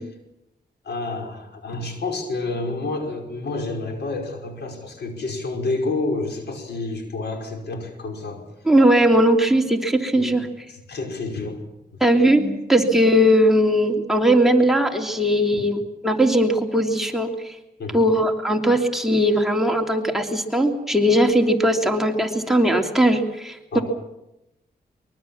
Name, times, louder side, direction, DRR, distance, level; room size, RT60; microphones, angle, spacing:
voice 1, 0.8-8.4 10.1-10.4 10.7-12.6 15.5-15.6 17.8-18.0 22.2-22.3 23.7-23.8, left 3 dB, 70° left, 4 dB, 5.4 m, -29 dB
voice 2, 8.7-10.5 12.0-12.4 12.7-17.6 17.9-23.8, equal, ahead, 4 dB, 3.0 m, -19 dB
24.0 x 22.5 x 7.3 m, 0.90 s
cardioid pair, 85°, 18 cm